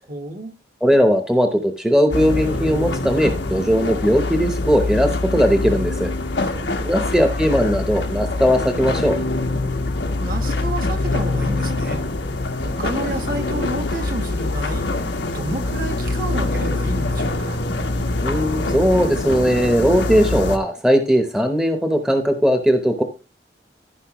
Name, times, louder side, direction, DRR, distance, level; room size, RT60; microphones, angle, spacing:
voice 1, 0.1-0.5 6.3-7.1 10.2-12.0 12.6-14.9 15.3-17.6, right 2 dB, 50° right, 1.4 m, -30 dB
voice 2, 0.8-6.1 6.8-9.2 18.2-23.0, equal, 5° right, 0.8 m, -18 dB
sound 1, 2.1-20.6, left 2 dB, 90° left, 1.2 m, -24 dB
14.0 x 5.4 x 3.0 m
head